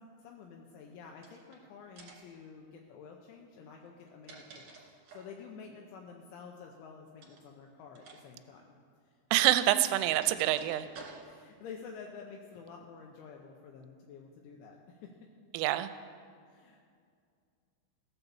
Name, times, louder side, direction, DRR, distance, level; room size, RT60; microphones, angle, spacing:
voice 1, 0.0-8.6 9.0-9.2 10.7-15.3 16.5-16.8, left 5 dB, 80° left, 1 dB, 3.0 m, -50 dB
sound 1, 1.2-1.6 2.0-2.4 3.9-5.4 7.2-7.5 7.9-8.2 8.5-8.6 9.6-11.5, right 4 dB, 55° right, 2.2 m, -52 dB
voice 2, 9.3-10.9 15.5-15.9, right 14 dB, 90° right, 12 dB, 3.2 m, -26 dB
16.5 x 7.1 x 7.0 m, 2.2 s
omnidirectional pair, 5.8 m